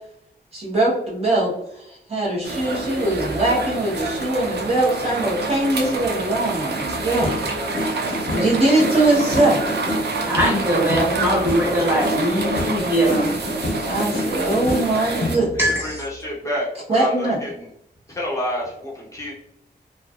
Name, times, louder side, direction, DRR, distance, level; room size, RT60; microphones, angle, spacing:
voice 1, 0.5-7.4 8.3-9.8 13.8-15.6 16.9-17.4, right 2 dB, 35° right, -6 dB, 0.9 m, -21 dB
sound 1, 2.4-15.3, right 2 dB, 85° right, 0.4 m, -27 dB
sound 2, 6.8-15.7, left 1 dB, 55° left, 0.6 m, -28 dB
voice 2, 10.2-13.3 15.6-16.0, equal, 10° right, -4 dB, 0.9 m, -21 dB
voice 3, 15.6-16.7 17.0-17.5 18.2-19.3, left 1 dB, 20° left, -6 dB, 0.7 m, -28 dB
2.5 x 2.3 x 2.3 m, 0.77 s
wide cardioid pair, 120°, 17 cm